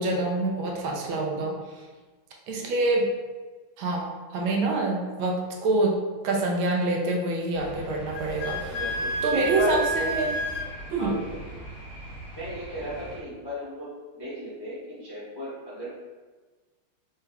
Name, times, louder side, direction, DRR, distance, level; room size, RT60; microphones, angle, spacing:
voice 1, 0.0-1.6 2.5-3.1 3.8-8.8 9.2-10.3 10.9-11.2, right 2 dB, 75° right, -1 dB, 1.4 m, -26 dB
sound 1, 7.5-13.2, right 1 dB, 35° right, 1.4 m, -41 dB
Wind instrument woodwind instrument, 8.1-10.7, right 1 dB, 85° left, 1.4 m, -30 dB
voice 2, 8.7-9.8 11.0-11.5 12.3-13.9 14.1-15.9, left 1 dB, 25° left, -10 dB, 0.5 m, -35 dB
3.3 x 3.3 x 3.3 m, 1.3 s
omnidirectional pair, 2.3 m